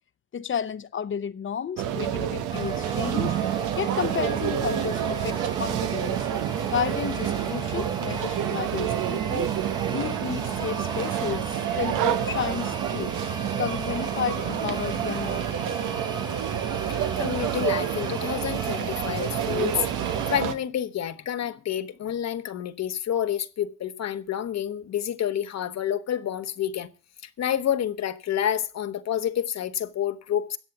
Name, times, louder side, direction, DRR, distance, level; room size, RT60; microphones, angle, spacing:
voice 1, 0.3-3.4 3.8-6.2 6.7-9.5 9.9-13.1 13.5-15.7, left 8 dB, 40° left, 0.9 m, -32 dB
sound 1, 1.8-20.5, right 10 dB, 85° right, 1.3 m, -28 dB
sound 2, 2.5-20.4, right 2 dB, 15° right, 1.1 m, -37 dB
voice 2, 16.9-19.9 20.3-26.9 27.2-30.6, left 10 dB, 60° left, 1.2 m, -29 dB
14.0 x 8.4 x 6.0 m
cardioid pair, 90°, 30 cm